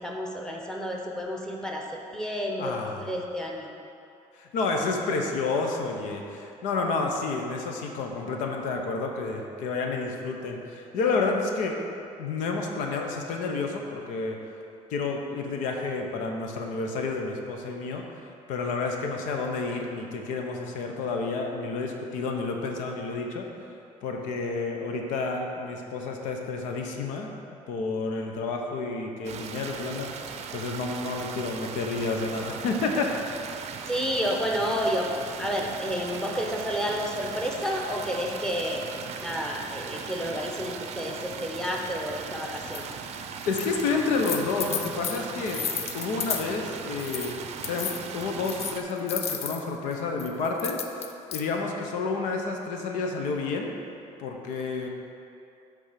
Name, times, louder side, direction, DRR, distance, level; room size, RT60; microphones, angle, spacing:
voice 1, 0.0-3.7 33.8-35.1 35.4-38.8 39.2-42.9, equal, 5° left, -1 dB, 0.9 m, -30 dB
voice 2, 2.6-3.0 4.4-11.8 12.2-14.4 14.9-18.0 18.5-23.5 24.0-27.3 27.7-33.1 43.5-45.6 45.9-47.3 47.6-53.7 54.2-54.9, left 4 dB, 90° left, 2 dB, 0.8 m, -30 dB
sound 1, 29.2-48.8, right 6 dB, 55° right, 0.5 m, -38 dB
sound 2, 42.7-42.8 43.4-43.8 44.1-46.5 47.0-47.3 47.6-49.6 50.2-51.4, left 8 dB, 55° left, 0.5 m, -33 dB
8.2 x 3.5 x 5.8 m, 2.7 s
cardioid pair, 120°, 13 cm